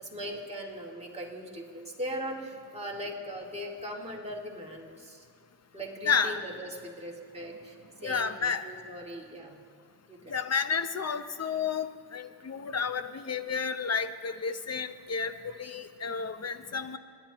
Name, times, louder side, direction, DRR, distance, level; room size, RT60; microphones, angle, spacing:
voice 1, 0.0-5.3 5.7-7.8 8.0-9.5 10.1-10.4, equal, 15° right, -3 dB, 2.2 m, -39 dB
voice 2, 6.0-6.4 8.0-8.6 10.3-15.3 15.6-17.0, left 6 dB, 35° left, 11 dB, 0.7 m, -31 dB
28.5 x 10.5 x 3.0 m, 2.1 s
cardioid pair, 90°, 45 cm